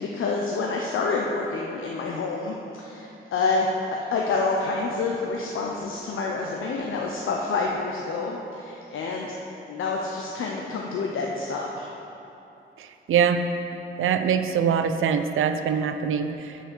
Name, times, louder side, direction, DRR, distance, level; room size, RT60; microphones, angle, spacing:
voice 1, 0.0-3.7 4.1-9.3 9.7-11.9, left 4 dB, 75° left, -1 dB, 0.7 m, -28 dB
voice 2, 12.8-13.4 14.0-16.6, right 7 dB, 75° right, 8 dB, 0.5 m, -23 dB
6.0 x 5.6 x 6.1 m, 2.9 s
cardioid pair, 60°, 21 cm